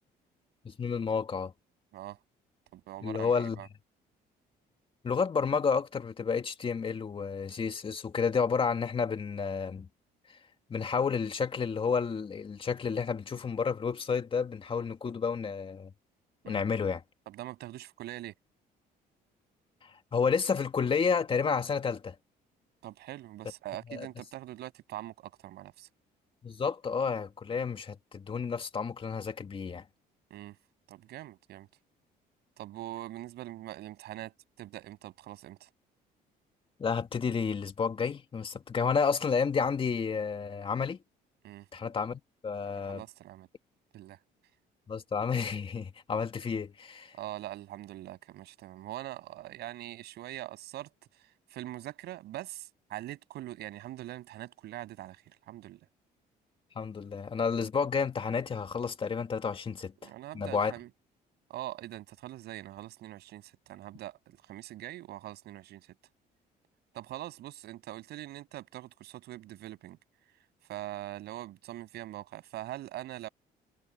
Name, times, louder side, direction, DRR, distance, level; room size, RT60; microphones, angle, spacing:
voice 1, 0.6-1.5 3.0-3.6 5.0-9.9 10.7-15.9 16.5-17.0 20.1-22.2 23.9-24.1 26.4-29.8 36.8-41.0 41.7-43.0 44.9-47.1 56.8-60.1 60.3-60.7, left 5 dB, 30° left, 2.1 m, -30 dB
voice 2, 2.7-3.7 16.4-16.6 17.3-18.3 22.8-25.9 30.3-30.5 30.9-31.7 32.6-35.7 41.4-41.7 42.9-43.5 43.9-44.2 47.1-50.9 51.5-55.8 60.0-60.9 61.5-65.9 66.9-70.0 70.7-73.3, right 15 dB, 75° right, 7.8 m, -43 dB
cardioid pair, 110°, 17 cm